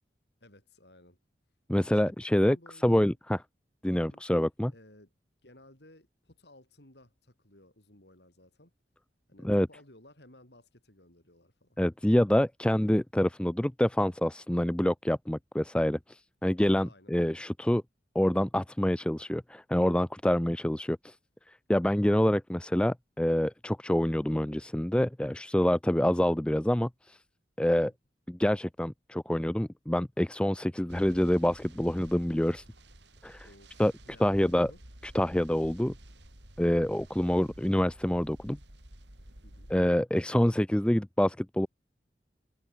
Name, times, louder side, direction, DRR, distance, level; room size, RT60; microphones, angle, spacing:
voice 1, 0.4-1.2 1.9-3.1 4.0-4.2 4.7-5.1 5.4-8.7 9.3-11.8 16.8-17.1 33.4-34.8 39.4-39.7, left 1 dB, 75° left, 7.1 m, -57 dB
voice 2, 1.7-2.6 2.8-3.4 3.8-4.7 9.4-9.7 11.8-17.8 18.2-21.2 21.5-27.2 27.6-27.9 28.3-32.6 33.2-33.5 33.8-33.9 34.2-34.7 35.1-35.9 36.6-38.6 39.7-41.7, left 1 dB, 5° left, 0.4 m, -26 dB
sound 1, 30.9-39.9, right 1 dB, 90° right, 5.8 m, -52 dB
head